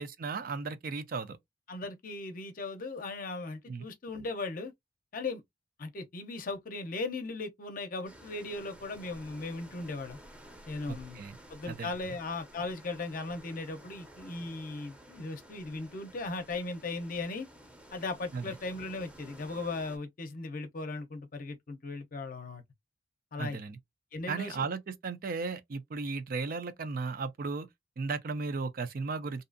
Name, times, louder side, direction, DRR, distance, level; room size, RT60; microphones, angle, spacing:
voice 1, 0.0-1.4 3.7-3.9 10.9-11.4 11.7-11.9 18.3-18.5 23.4-23.8 24.3-27.7 28.0-29.4, right 4 dB, 50° right, 0.4 m, -35 dB
voice 2, 1.7-4.7 5.1-5.4 5.8-10.2 10.7-11.2 11.5-17.5 17.9-22.6 23.3-23.6 24.1-24.7, left 3 dB, 50° left, 0.6 m, -38 dB
sound 1, 8.0-20.0, equal, 5° right, 0.6 m, -53 dB
2.7 x 2.4 x 2.4 m
head